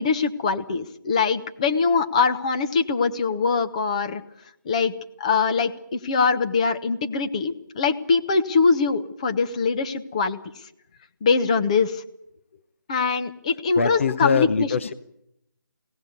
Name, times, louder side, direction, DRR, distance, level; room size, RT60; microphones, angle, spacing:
voice 1, 0.0-4.2 4.6-4.9 5.2-10.4 11.2-12.0 12.9-14.7, left 5 dB, 20° left, 9 dB, 1.0 m, -23 dB
voice 2, 13.8-14.9, left 5 dB, 40° left, 13 dB, 0.9 m, -22 dB
22.0 x 18.0 x 9.4 m, 0.79 s
figure-of-eight pair, 170°, 11 cm